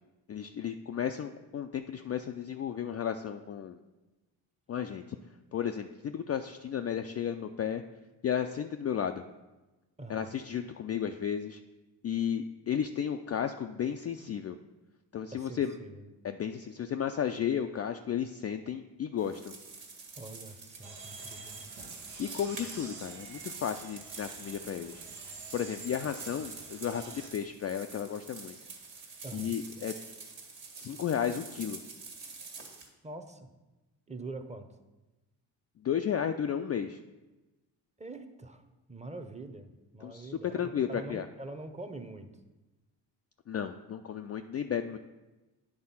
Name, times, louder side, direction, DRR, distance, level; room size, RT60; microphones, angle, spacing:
voice 1, 0.3-3.8 4.7-5.2 5.5-7.8 8.2-9.2 10.1-11.6 12.0-14.6 15.1-15.7 16.2-19.6 22.2-25.0 25.5-28.5 29.3-29.9 30.8-31.8 35.8-37.0 40.0-40.3 40.6-41.3 43.5-45.0, left 8 dB, 35° left, 6 dB, 0.4 m, -33 dB
voice 2, 10.0-10.4 15.3-16.1 20.2-21.8 29.2-29.6 33.0-33.5 34.1-34.7 38.0-38.6 38.9-39.7 39.9-42.3, right 2 dB, 15° right, 8 dB, 0.8 m, -44 dB
sound 1, 19.2-32.9, right 4 dB, 65° right, 1.7 m, -47 dB
sound 2, 20.8-27.3, right 3 dB, 80° right, 1.2 m, -48 dB
8.7 x 3.6 x 5.6 m, 1.1 s
hypercardioid pair, 45°, 50 cm